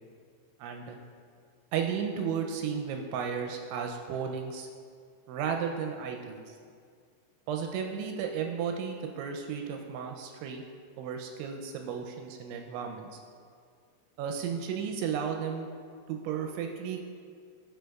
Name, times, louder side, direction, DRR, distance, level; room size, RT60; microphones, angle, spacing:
voice 1, 0.6-1.0 1.7-4.7 5.3-6.6 7.5-10.6 11.0-13.2 14.2-15.7 16.1-17.0, right 7 dB, 85° right, 3 dB, 2.8 m, -34 dB
11.5 x 6.2 x 2.3 m, 2.1 s
omnidirectional pair, 5.4 m